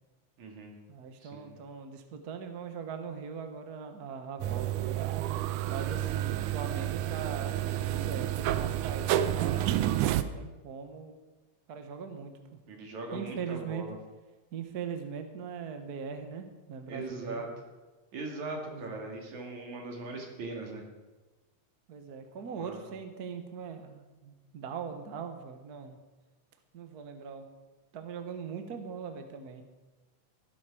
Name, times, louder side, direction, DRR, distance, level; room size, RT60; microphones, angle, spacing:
voice 1, 0.4-0.7 1.2-1.5 12.7-14.0 16.9-17.5 18.1-20.8 22.6-22.9, right 3 dB, 75° right, 1 dB, 3.8 m, -40 dB
voice 2, 0.9-4.9 5.7-11.2 11.7-12.6 13.1-13.8 14.5-17.4 18.7-19.0 21.9-26.0 26.7-27.5 27.9-29.6, right 6 dB, 55° right, 6 dB, 1.1 m, -40 dB
sound 1, 4.4-10.2, right 13 dB, 90° right, 2.1 m, -30 dB
14.5 x 12.0 x 4.9 m, 1.2 s
omnidirectional pair, 3.4 m